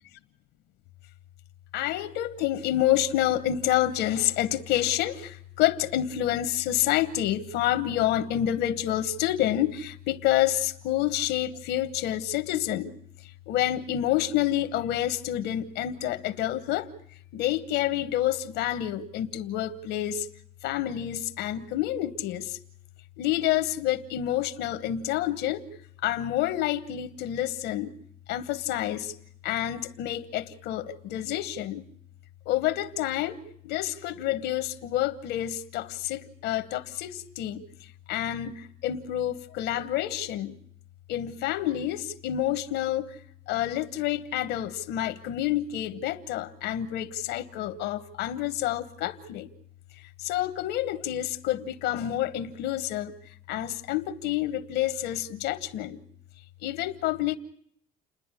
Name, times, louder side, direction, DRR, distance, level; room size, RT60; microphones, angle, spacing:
voice 1, 1.7-12.9 13.5-16.9 17.3-20.3 20.6-22.6 23.2-25.6 26.0-27.9 28.3-29.1 29.4-31.9 32.5-37.6 38.1-40.6 41.1-43.2 43.5-49.5 50.2-53.1 53.5-56.0 56.6-57.4, left 12 dB, 90° left, 1.2 m, -28 dB
30.0 x 10.5 x 9.8 m
cardioid pair, 110°, 17 cm